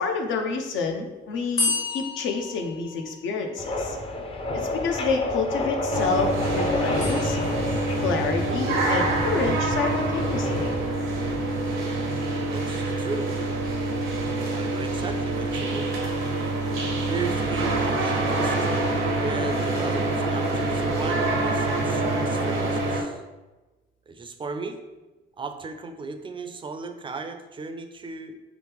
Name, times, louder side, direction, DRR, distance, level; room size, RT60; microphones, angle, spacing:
voice 1, 0.0-4.0 4.5-7.4 8.0-10.7, left 4 dB, 75° left, 3 dB, 0.6 m, -28 dB
sound 1, 1.6-3.5 7.0-8.0, left 4 dB, 55° left, 1.1 m, -31 dB
sound 2, 3.6-10.8, left 2 dB, 30° left, 0.5 m, -29 dB
sound 3, 5.9-23.0, right 2 dB, 80° right, 0.8 m, -26 dB
voice 2, 12.4-13.3 14.5-15.9 17.1-19.0 19.2-23.2 24.1-24.8 25.4-28.4, right 4 dB, 25° right, 7 dB, 0.4 m, -36 dB
3.4 x 3.1 x 3.4 m, 1.1 s
cardioid pair, 90°, 20 cm